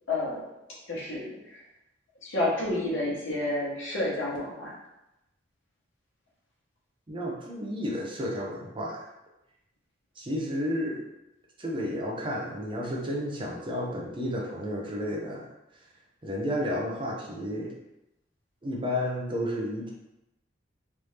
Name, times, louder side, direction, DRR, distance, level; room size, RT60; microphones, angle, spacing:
voice 1, 0.1-0.4 0.9-1.6 2.2-4.7, left 2 dB, 70° left, -4 dB, 1.1 m, -30 dB
voice 2, 7.1-9.1 10.2-11.0 11.6-15.5 16.2-17.8 18.6-19.9, equal, 25° right, -2 dB, 0.6 m, -32 dB
3.3 x 2.7 x 3.2 m, 0.92 s
head